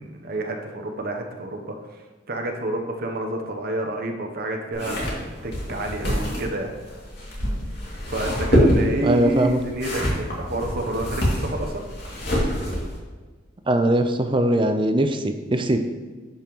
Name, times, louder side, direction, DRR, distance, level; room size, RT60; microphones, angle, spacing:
voice 1, 0.0-1.7 2.3-6.7 8.1-11.9, right 1 dB, 55° right, 3 dB, 0.8 m, -29 dB
sound 1, 4.7-13.0, equal, 60° left, 2.4 m, -25 dB
voice 2, 9.0-9.6 13.7-15.8, right 1 dB, 25° right, 7 dB, 0.6 m, -21 dB
10.5 x 5.6 x 3.1 m, 1.4 s
head